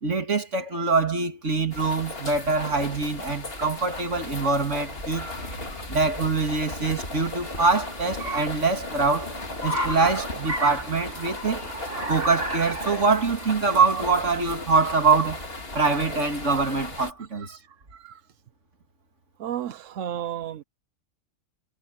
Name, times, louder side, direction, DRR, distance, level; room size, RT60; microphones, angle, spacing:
voice 1, 0.0-5.3 5.9-11.6 12.1-15.4 15.7-17.6, right 4 dB, 70° right, 2.9 m, -24 dB
sound 1, 1.7-17.1, left 2 dB, 50° left, 2.8 m, -37 dB
Car, 4.9-16.9, right 1 dB, 50° right, 3.9 m, -36 dB
voice 2, 19.4-20.6, right 10 dB, 90° right, 1.2 m, -33 dB
omnidirectional pair, 1.3 m